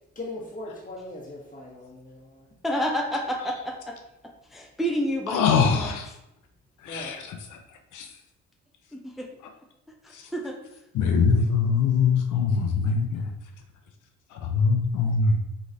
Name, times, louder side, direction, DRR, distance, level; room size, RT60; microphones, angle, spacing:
voice 1, 0.1-2.4 6.9-7.3, left 2 dB, 25° left, -2 dB, 1.5 m, -39 dB
voice 2, 2.6-3.9 4.5-6.0 8.9-9.3 10.0-10.5, equal, ahead, 0 dB, 0.6 m, -29 dB
voice 3, 5.3-6.1 6.8-7.2 7.9-8.1 10.9-13.3 14.5-15.4, left 5 dB, 85° left, 4 dB, 0.6 m, -22 dB
3.9 x 3.1 x 4.0 m, 0.83 s
cardioid pair, 90°, 30 cm